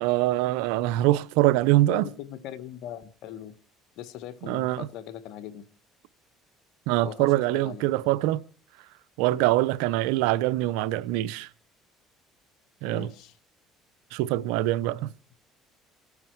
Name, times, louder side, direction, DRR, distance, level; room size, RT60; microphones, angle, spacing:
voice 1, 0.0-2.1 4.5-4.9 6.9-8.4 9.2-11.5 12.8-13.1 14.1-15.1, right 16 dB, 85° right, 0.7 m, -24 dB
voice 2, 1.8-3.5 4.0-5.6 7.0-7.9 12.9-13.4, left 11 dB, 75° left, 1.5 m, -40 dB
28.5 x 9.6 x 4.7 m
supercardioid pair, 90°, 0 cm